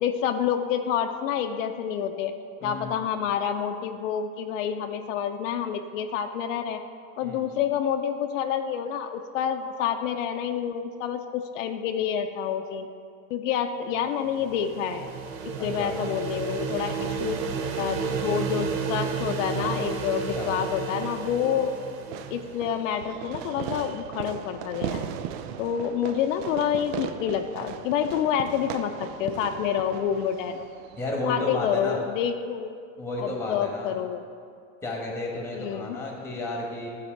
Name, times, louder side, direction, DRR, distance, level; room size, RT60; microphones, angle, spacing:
voice 1, 0.0-2.3 2.6-6.8 7.2-12.9 13.3-15.1 15.6-17.4 17.8-21.8 22.3-25.2 25.6-30.6 31.2-32.8 33.2-34.2 35.5-36.0, left 8 dB, 70° left, 6 dB, 0.6 m, -28 dB
voice 2, 2.6-3.0 7.2-7.4 15.6-15.9 20.3-20.5 31.0-32.0 33.0-34.0 34.8-36.9, left 2 dB, 5° left, -1 dB, 1.2 m, -32 dB
sound 1, 14.0-22.8, right 5 dB, 80° right, 0.9 m, -32 dB
Fireworks, 22.1-31.1, right 9 dB, 50° right, 0.4 m, -37 dB
11.5 x 4.1 x 4.5 m, 2.3 s
supercardioid pair, 150°, 40 cm